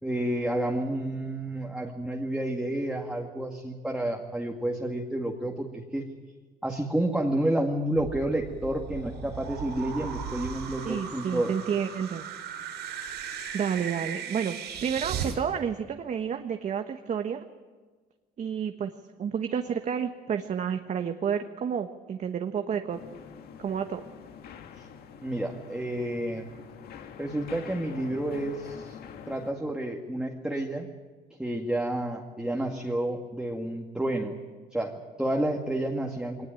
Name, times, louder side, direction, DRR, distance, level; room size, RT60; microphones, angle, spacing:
voice 1, 0.0-6.1 6.6-11.5 24.8-24.9 25.2-26.5 27.2-29.0 29.3-30.9 31.4-34.4 34.7-36.5, right 1 dB, 5° right, 1 dB, 2.2 m, -30 dB
sound 1, 7.9-15.4, right 7 dB, 80° right, 5.7 m, -37 dB
voice 2, 10.8-12.3 13.5-17.5 18.4-18.9 19.2-23.0 23.6-24.0, right 7 dB, 45° right, 6 dB, 1.3 m, -30 dB
sound 2, 22.9-29.5, left 7 dB, 65° left, 2.1 m, -46 dB
22.0 x 19.5 x 9.2 m, 1.4 s
cardioid pair, 110°, 17 cm